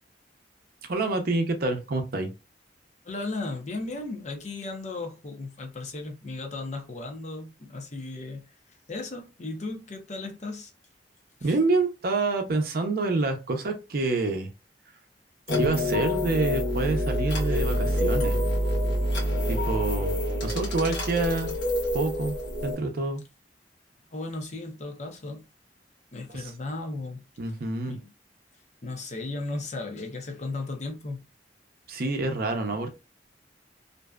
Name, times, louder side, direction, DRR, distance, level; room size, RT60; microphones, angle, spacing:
voice 1, 0.8-2.3 11.4-14.5 15.5-18.4 19.5-20.1 20.4-21.5 21.9-22.4 22.6-23.2 26.3-26.4 27.4-28.0 31.9-33.0, right 3 dB, 60° right, 0.6 m, -27 dB
voice 2, 3.0-8.4 8.9-10.7 11.4-11.5 24.1-25.5 26.1-27.2 27.9-28.1 28.8-31.2, left 2 dB, 40° left, 0.6 m, -35 dB
sound 1, 15.5-22.7, equal, 85° left, 1.1 m, -27 dB
2.6 x 2.2 x 2.2 m
head